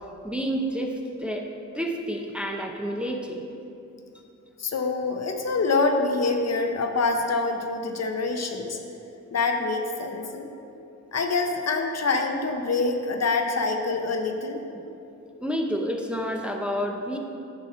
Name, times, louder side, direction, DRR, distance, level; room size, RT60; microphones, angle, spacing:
voice 1, 0.2-1.4 1.7-3.4 15.4-17.2, equal, 5° right, 2 dB, 0.7 m, -29 dB
voice 2, 4.6-8.8 9.3-10.5 11.1-14.6, left 3 dB, 55° left, 4 dB, 0.8 m, -25 dB
9.6 x 6.0 x 4.3 m, 2.7 s
wide cardioid pair, 100°, 31 cm